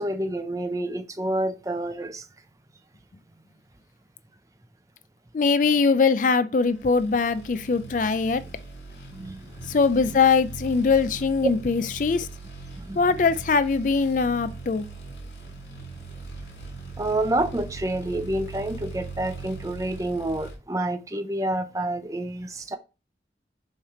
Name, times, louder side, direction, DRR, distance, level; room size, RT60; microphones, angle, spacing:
voice 1, 0.0-2.2 9.1-9.4 9.7-9.8 12.8-13.0 17.0-22.8, right 1 dB, 20° right, 0.5 m, -28 dB
voice 2, 5.3-8.4 9.7-12.3 13.0-14.9, left 4 dB, 45° left, 0.4 m, -22 dB
sound 1, 6.8-20.5, right 3 dB, 70° left, 2.1 m, -40 dB
7.1 x 3.2 x 4.9 m
head